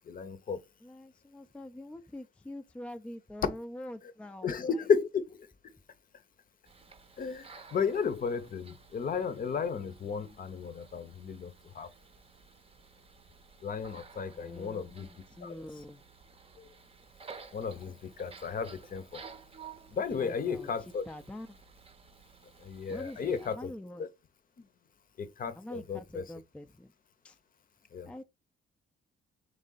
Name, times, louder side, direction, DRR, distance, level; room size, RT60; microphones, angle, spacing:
voice 1, 0.0-0.6 4.4-5.5 7.2-11.9 13.6-15.1 15.4-15.5 16.6-16.7 17.5-19.2 19.9-21.0 22.6-23.7 24.0-24.1 25.2-26.2 27.9-28.1, left 6 dB, 45° left, 0.7 m, -33 dB
voice 2, 0.8-4.8 14.3-16.0 20.2-21.6 22.9-24.1 25.6-26.9 27.2-27.4 28.1-28.2, left 1 dB, 5° left, 0.4 m, -45 dB
sound 1, 6.6-23.5, right 5 dB, 30° right, 0.7 m, -54 dB
3.7 x 3.2 x 3.9 m
cardioid pair, 90°, 20 cm